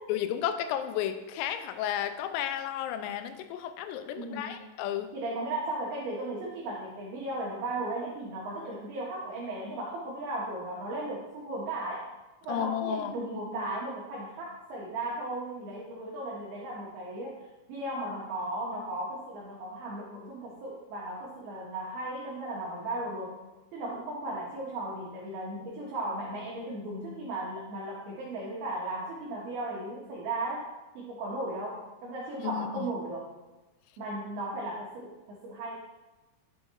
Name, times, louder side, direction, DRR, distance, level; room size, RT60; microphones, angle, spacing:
voice 1, 0.1-5.1 12.5-13.2 32.5-32.7, left 10 dB, 90° left, 9 dB, 3.3 m, -32 dB
voice 2, 4.2-4.6 5.1-12.0 12.4-23.4 23.7-30.7 31.0-33.3 34.0-35.8, right 1 dB, 90° right, -4 dB, 2.1 m, -36 dB
11.0 x 5.6 x 2.9 m, 1.1 s
omnidirectional pair, 5.9 m